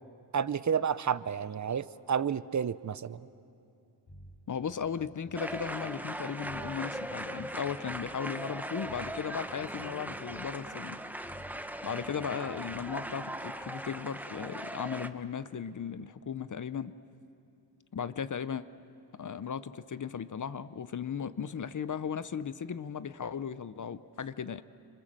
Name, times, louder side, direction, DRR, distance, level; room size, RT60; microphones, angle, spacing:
voice 1, 0.3-3.3, right 7 dB, 40° right, 16 dB, 0.5 m, -30 dB
sound 1, 4.1-13.7, right 1 dB, 60° left, 5.8 m, -54 dB
voice 2, 4.5-11.0 11.8-16.9 17.9-18.6 19.1-24.6, left 7 dB, 45° left, 14 dB, 0.6 m, -36 dB
sound 2, 5.4-15.1, right 1 dB, 5° right, 0.7 m, -39 dB
28.0 x 26.0 x 7.5 m, 2.7 s
wide cardioid pair, 160°, 45 cm